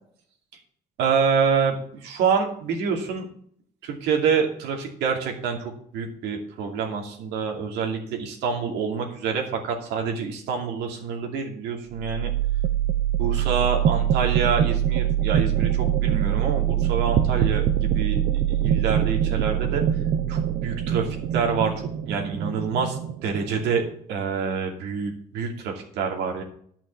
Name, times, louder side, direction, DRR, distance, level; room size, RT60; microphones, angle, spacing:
voice 1, 1.0-3.3 3.8-12.3 13.2-19.8 20.3-26.4, right 6 dB, 85° right, 3 dB, 2.5 m, -27 dB
sound 1, 11.9-23.9, right 10 dB, 60° right, 0.8 m, -24 dB
11.0 x 5.9 x 7.1 m, 0.62 s
cardioid pair, 110°, 17 cm